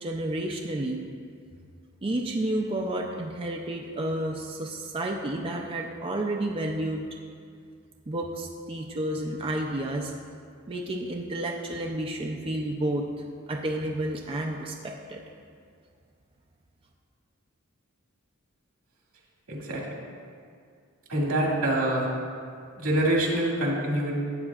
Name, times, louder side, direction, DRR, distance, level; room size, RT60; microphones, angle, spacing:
voice 1, 0.0-1.0 2.0-7.1 8.1-10.1 10.7-13.0 13.5-15.2, right 1 dB, 25° right, 0 dB, 0.5 m, -31 dB
voice 2, 19.5-19.8 21.1-22.1 22.8-24.2, right 1 dB, 85° right, -3 dB, 2.2 m, -25 dB
13.0 x 8.4 x 2.4 m, 2.2 s
head